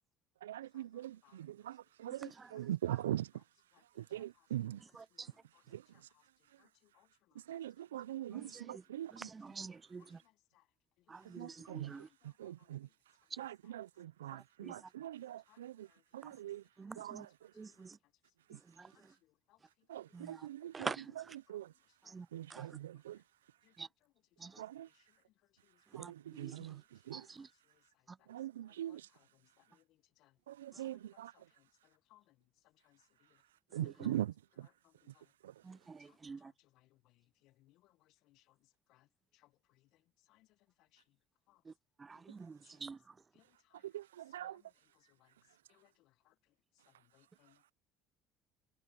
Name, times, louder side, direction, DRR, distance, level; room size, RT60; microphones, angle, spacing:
voice 1, 0.4-3.3 4.0-4.8 5.7-5.8 7.5-9.3 11.3-11.9 12.2-12.9 13.4-15.9 16.1-16.6 17.0-17.5 18.5-18.6 19.9-21.7 22.3-23.2 24.6-24.9 25.9-27.3 28.3-29.1 30.5-31.3 33.7-34.7 35.4-35.5 43.8-44.6, right 12 dB, 90° right, 0.4 m, -42 dB
voice 2, 9.3-10.0 11.1-12.0 14.6-14.7 16.8-17.3 17.6-17.9 20.1-20.3 20.7-21.0 22.1-22.3 22.5-22.6 23.8-23.9 24.4-24.5 26.0-26.1 26.4-26.5 27.1-27.5 35.7-36.0 36.2-36.4 42.3-43.0, right 4 dB, 25° right, 0.4 m, -45 dB
voice 3, 37.4-37.9 38.3-38.4 38.9-39.1 40.3-40.5 40.9-41.0 41.5-41.6 42.6-42.7 43.3-43.4 44.4-44.6 45.2-45.3 45.7-45.9 46.3-46.4 47.1-47.6, left 17 dB, 65° left, 1.1 m, -68 dB
hypercardioid pair, 70°, 0 cm